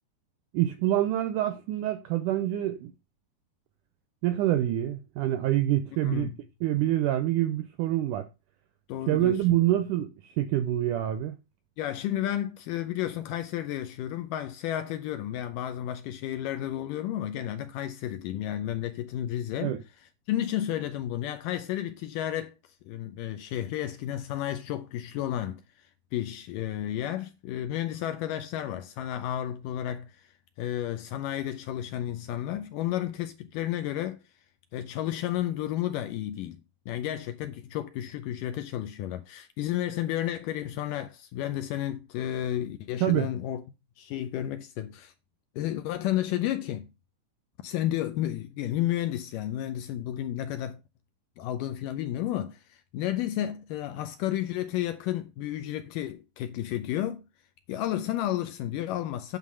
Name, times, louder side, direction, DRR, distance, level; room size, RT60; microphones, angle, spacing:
voice 1, 0.5-2.9 4.2-6.3 6.6-8.3 9.1-11.3 19.6-19.8 43.0-43.3, right 13 dB, 80° right, 1.8 m, -26 dB
voice 2, 6.0-6.4 8.9-9.6 11.8-19.8 20.3-22.5 22.9-25.6 26.1-30.3 30.6-34.2 34.7-43.6 44.0-45.1 45.6-46.9 47.6-50.8 51.4-57.2 57.7-59.4, left 12 dB, 80° left, 2.0 m, -32 dB
9.4 x 3.7 x 6.2 m
omnidirectional pair, 4.3 m